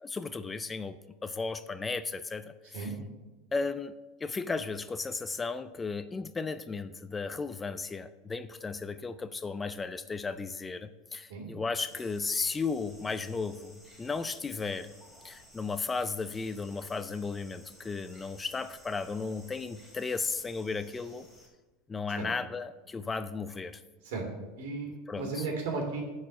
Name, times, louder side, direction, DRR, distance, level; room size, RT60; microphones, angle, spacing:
voice 1, 0.0-1.0 1.2-2.5 2.8-2.9 3.5-3.9 4.2-14.9 15.2-21.3 21.9-23.8 25.1-25.4, left 4 dB, 15° left, 12 dB, 0.4 m, -35 dB
sound 1, 11.9-21.5, equal, ahead, 2.5 m, -56 dB
voice 2, 24.6-26.0, right 4 dB, 80° right, 1 dB, 2.9 m, -35 dB
9.7 x 4.8 x 6.8 m, 1.2 s
supercardioid pair, 140°, 0 cm